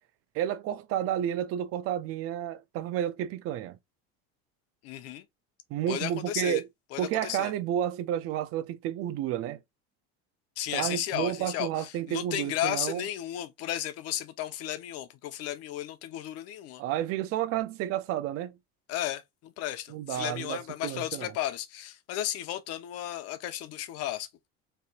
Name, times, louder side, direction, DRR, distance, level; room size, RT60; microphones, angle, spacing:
voice 1, 0.3-3.8 5.7-6.7 7.0-9.6 10.7-13.0 16.8-18.5 19.9-21.3, right 11 dB, 50° right, 0.5 m, -31 dB
voice 2, 4.8-5.2 5.9-6.6 6.9-7.5 10.6-16.8 18.9-24.5, left 12 dB, 55° left, 0.9 m, -34 dB
4.2 x 3.3 x 2.4 m
cardioid pair, 140°, 29 cm